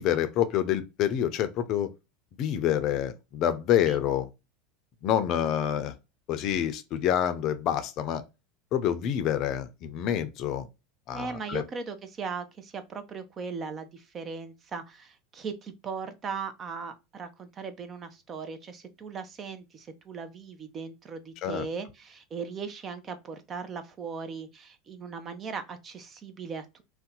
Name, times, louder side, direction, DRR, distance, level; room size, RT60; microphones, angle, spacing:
voice 1, 0.0-1.9 2.4-4.3 5.0-5.9 6.3-8.2 8.7-10.7 11.1-11.6 21.4-21.7, left 10 dB, 50° left, 0.5 m, -27 dB
voice 2, 11.1-26.8, right 5 dB, 35° right, 0.6 m, -38 dB
2.7 x 2.2 x 3.8 m
supercardioid pair, 105°, 0 cm